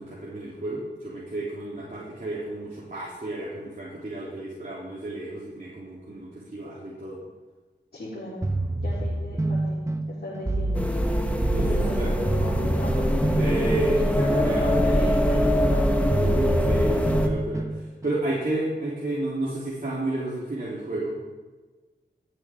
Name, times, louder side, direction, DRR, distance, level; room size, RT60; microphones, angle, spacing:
voice 1, 0.0-7.2 11.5-11.7 11.9-12.1 13.4-14.7 16.2-21.2, right 2 dB, 45° right, -8 dB, 3.3 m, -31 dB
voice 2, 7.9-8.4 8.8-10.8 11.7-13.4 14.0-15.9, left 1 dB, 55° left, -9 dB, 3.9 m, -36 dB
sound 1, 8.4-18.2, right 1 dB, 15° right, 1.0 m, -28 dB
sound 2, 10.7-17.3, equal, 5° left, 1.5 m, -23 dB
15.5 x 9.0 x 3.7 m, 1.3 s
cardioid pair, 45°, 19 cm